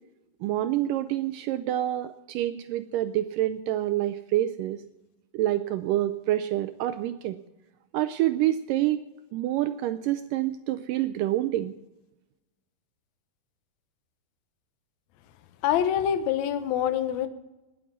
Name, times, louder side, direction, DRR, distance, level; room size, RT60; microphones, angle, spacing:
voice 1, 0.4-4.8 5.3-7.4 7.9-9.0 9.3-11.7, right 13 dB, 85° right, 11 dB, 1.9 m, -27 dB
voice 2, 15.6-17.3, left 10 dB, 70° left, 10 dB, 1.8 m, -25 dB
19.0 x 7.1 x 7.3 m, 1.0 s
omnidirectional pair, 4.4 m